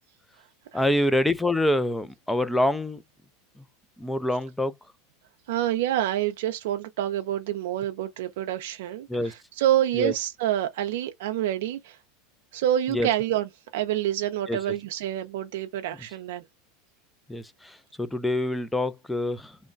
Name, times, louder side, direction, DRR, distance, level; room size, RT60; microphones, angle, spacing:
voice 1, 0.7-3.0 4.0-4.7 9.1-9.3 10.0-10.1 12.9-13.1 14.5-14.6 17.3-17.4 18.0-19.4, left 1 dB, 5° left, 0.3 m, -25 dB
voice 2, 5.5-12.0 12.5-16.4, right 12 dB, 75° right, 0.4 m, -27 dB
3.1 x 2.1 x 2.4 m
supercardioid pair, 130°, 0 cm